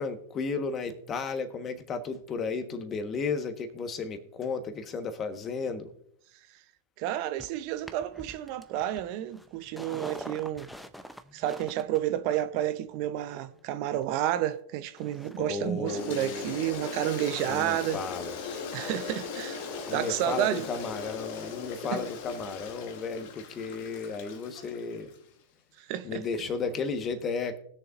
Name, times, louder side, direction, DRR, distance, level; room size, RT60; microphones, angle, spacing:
voice 1, 0.0-5.9 15.4-16.5 17.5-18.4 19.9-25.1 26.0-27.6, left 4 dB, 30° left, 1.3 m, -34 dB
voice 2, 7.0-10.7 11.3-18.0 18.4-20.6 21.9-22.0 25.8-26.2, right 12 dB, 50° right, 0.8 m, -31 dB
sound 1, 7.4-14.6 15.0-15.4 15.6-20.1 20.4-20.5, equal, ahead, 0.7 m, -48 dB
Toilet flush, 15.8-25.2, left 5 dB, 55° left, 1.3 m, -39 dB
20.0 x 6.8 x 2.6 m
hypercardioid pair, 100°, 0 cm